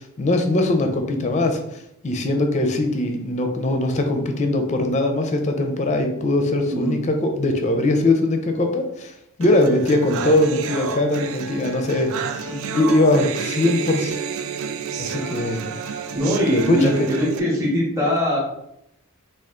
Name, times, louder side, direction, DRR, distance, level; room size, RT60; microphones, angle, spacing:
voice 1, 0.0-9.1 9.4-14.1 15.0-15.6 16.5-17.1, left 1 dB, 30° left, 5 dB, 0.4 m, -21 dB
sound 1, 9.4-17.4, right 6 dB, 65° right, 0.3 m, -30 dB
voice 2, 16.1-18.4, equal, 15° right, -5 dB, 0.8 m, -21 dB
3.6 x 2.4 x 3.6 m, 0.78 s
head